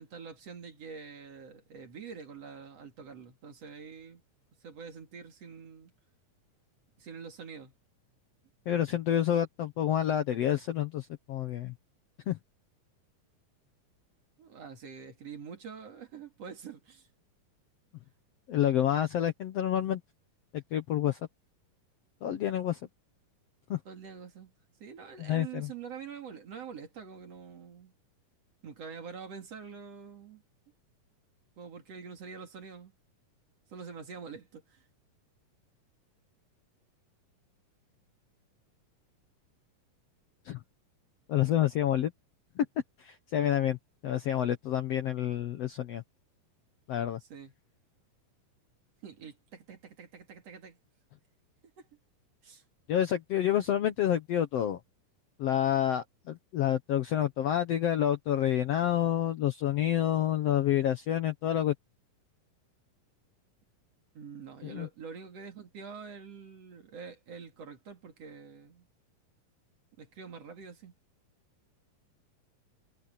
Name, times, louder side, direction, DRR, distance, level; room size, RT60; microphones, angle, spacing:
voice 1, 0.0-4.2 4.6-5.9 7.0-7.7 14.4-17.1 23.8-24.5 24.8-27.9 28.6-30.4 31.6-32.9 33.7-34.8 47.2-47.5 49.0-50.8 51.8-51.9 52.4-52.6 64.1-68.9 70.0-70.9, right 6 dB, 50° right, 3.3 m, -46 dB
voice 2, 8.7-11.7 12.3-12.4 18.5-20.0 20.5-21.2 22.2-22.8 23.7-23.8 25.2-25.7 40.4-40.6 41.3-42.1 42.6-42.7 43.0-43.8 44.0-46.0 46.9-47.2 52.9-54.8 55.4-61.7 64.6-64.9, left 11 dB, 65° left, 1.6 m, -28 dB
omnidirectional pair, 3.9 m